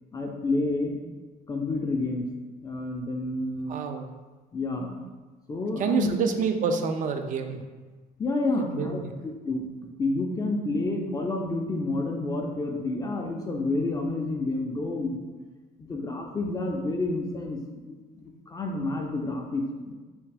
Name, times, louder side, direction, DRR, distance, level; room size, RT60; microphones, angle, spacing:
voice 1, 0.1-1.0 1.5-2.3 2.6-3.8 4.5-4.9 5.5-6.2 8.2-9.0 9.5-9.7 10.0-15.2 15.9-19.9, left 2 dB, 20° left, 1 dB, 0.4 m, -29 dB
voice 2, 3.7-4.1 5.8-7.6 8.6-9.1, right 5 dB, 50° right, 6 dB, 0.4 m, -28 dB
3.4 x 2.8 x 3.3 m, 1.3 s
cardioid pair, 110°, 17 cm